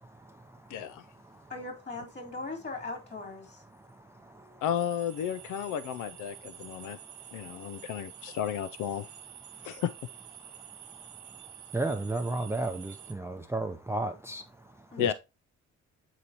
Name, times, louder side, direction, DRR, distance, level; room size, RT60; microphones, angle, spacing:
voice 1, 0.7-1.0 4.6-7.0 7.3-9.1 9.6-9.9 15.0-15.1, left 9 dB, 90° left, 0.5 m, -33 dB
voice 2, 1.5-3.6 14.9-15.1, left 3 dB, 35° left, 3.3 m, -39 dB
sound 1, 4.8-13.1, right 10 dB, 75° right, 1.3 m, -49 dB
voice 3, 11.7-14.4 15.0-15.1, right 2 dB, 10° right, 0.5 m, -32 dB
8.3 x 4.1 x 2.8 m
cardioid pair, 90°, 30 cm